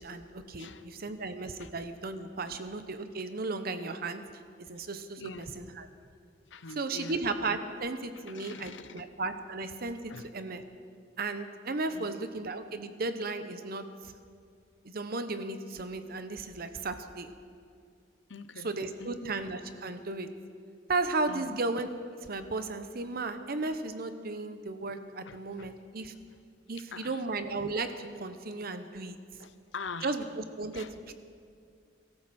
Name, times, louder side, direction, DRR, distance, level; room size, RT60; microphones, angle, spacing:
voice 1, 0.0-4.2 4.6-5.2 5.6-5.9 6.8-10.6 11.2-14.1 14.8-17.3 18.6-20.3 20.9-21.9 22.2-26.1 26.7-29.2 30.0-31.1, right 3 dB, 55° right, 9 dB, 1.0 m, -35 dB
voice 2, 0.6-0.9 1.6-1.7 2.5-2.6 5.2-5.5 6.5-7.2 8.1-9.1 10.1-10.3 11.9-12.2 18.3-18.7 19.0-19.3 21.3-21.6 25.2-25.7 26.9-27.2 29.4-30.1 30.7-30.9, left 4 dB, 80° left, 12 dB, 0.8 m, -44 dB
23.0 x 13.5 x 4.4 m, 2.3 s
head